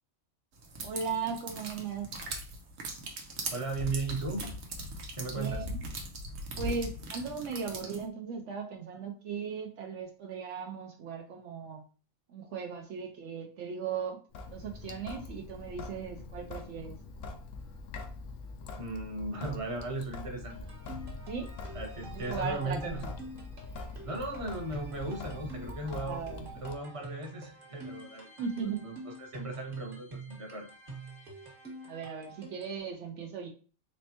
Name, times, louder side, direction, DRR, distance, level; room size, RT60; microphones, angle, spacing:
sound 1, 0.6-8.0, right 1 dB, 85° right, 1.2 m, -39 dB
voice 1, 0.8-2.1 5.3-5.8 6.6-11.8 12.3-14.2 14.5-17.0 21.3-21.5 22.1-23.1 26.0-26.5 28.4-28.8 31.8-33.5, right 6 dB, 70° right, 3 dB, 0.9 m, -37 dB
voice 2, 3.5-4.5 5.2-5.6 18.8-20.6 21.7-23.0 24.0-26.2 26.6-28.3 28.6-30.7, right 2 dB, 30° right, 2 dB, 0.8 m, -36 dB
Sink (filling or washing) / Drip, 14.3-26.8, left 3 dB, 85° left, 1.0 m, -43 dB
sound 2, 20.5-32.8, right 3 dB, 45° right, 1.4 m, -47 dB
4.3 x 3.2 x 2.8 m, 0.38 s
omnidirectional pair, 1.3 m